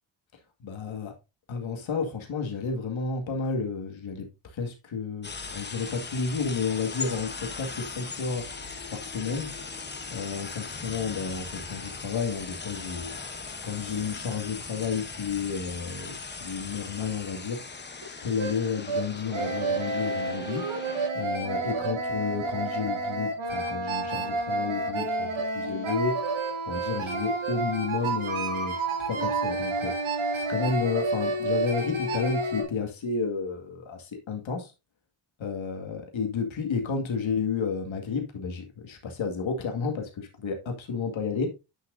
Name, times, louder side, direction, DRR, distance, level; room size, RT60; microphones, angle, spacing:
voice 1, 0.6-1.1 1.5-4.3 4.5-7.3 7.6-8.4 8.9-9.5 10.1-13.2 13.6-17.6 18.1-20.6 21.1-26.1 26.7-28.7 29.0-29.9 30.3-34.7 35.4-41.5, left 5 dB, 70° left, 2.1 m, -31 dB
sound 1, 5.2-21.1, left 4 dB, 20° left, 0.9 m, -39 dB
sound 2, 18.0-18.1 18.4-18.5 18.9-19.0 19.3-32.6, right 3 dB, 75° right, 2.7 m, -29 dB
9.9 x 6.0 x 2.6 m
wide cardioid pair, 125°, 49 cm